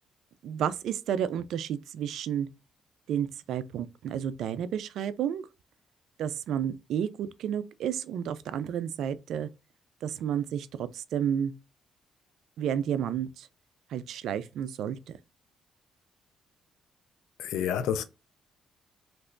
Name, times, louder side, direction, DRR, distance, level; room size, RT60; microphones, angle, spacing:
voice 1, 0.4-2.5 3.1-5.5 6.2-9.5 10.0-11.5 12.6-13.5 13.9-15.2, right 9 dB, 75° right, 0.3 m, -31 dB
voice 2, 17.4-18.0, left 9 dB, 85° left, 0.4 m, -29 dB
3.2 x 2.9 x 2.5 m
cardioid pair, 80°, 0 cm